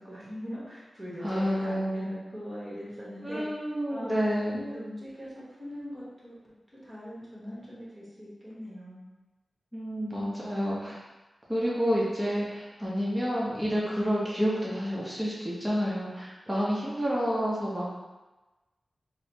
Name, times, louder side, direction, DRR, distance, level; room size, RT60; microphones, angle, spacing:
voice 1, 0.0-3.6 3.9-6.3 6.7-9.0 10.0-10.9, equal, 20° right, -8 dB, 1.2 m, -41 dB
voice 2, 1.2-2.1 3.2-4.6 9.7-11.0 11.5-17.9, equal, 5° right, -7 dB, 0.8 m, -29 dB
3.9 x 2.0 x 2.8 m, 1.1 s
wide cardioid pair, 95°, 0 cm